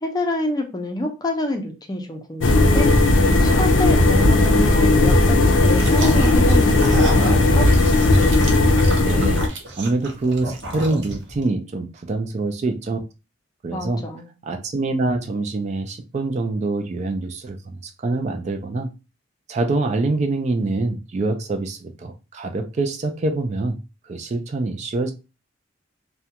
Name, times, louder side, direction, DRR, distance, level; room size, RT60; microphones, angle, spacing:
voice 1, 0.0-3.0 3.4-7.7 13.7-14.3, left 1 dB, 20° left, 3 dB, 0.5 m, -27 dB
sound 1, 2.4-9.5, left 2 dB, 80° left, 0.4 m, -16 dB
sound 2, 5.7-11.4, right 1 dB, 65° right, 0.7 m, -31 dB
voice 2, 9.0-9.5 9.8-13.0 13.6-14.0 14.4-18.9 19.5-23.8 24.0-25.1, right 2 dB, 35° right, 5 dB, 0.3 m, -25 dB
2.4 x 2.2 x 2.8 m, 0.29 s
head